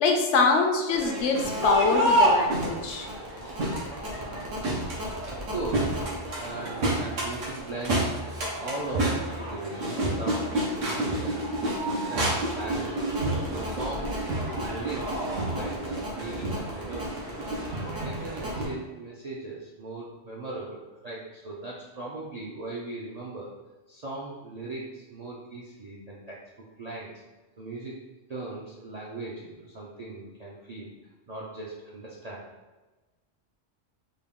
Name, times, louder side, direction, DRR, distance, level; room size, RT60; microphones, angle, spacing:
voice 1, 0.0-3.1, left 4 dB, 70° left, 3 dB, 0.9 m, -24 dB
Crowd, 0.9-18.7, right 1 dB, 85° right, 1.2 m, -29 dB
voice 2, 5.0-6.1 6.4-8.2 8.6-13.0 13.5-17.2 17.8-23.5 23.9-26.4 26.8-27.1 27.6-28.0 28.3-30.9 31.3-32.5, right 2 dB, 50° right, -6 dB, 0.5 m, -39 dB
3.7 x 2.3 x 3.6 m, 1.2 s
omnidirectional pair, 1.3 m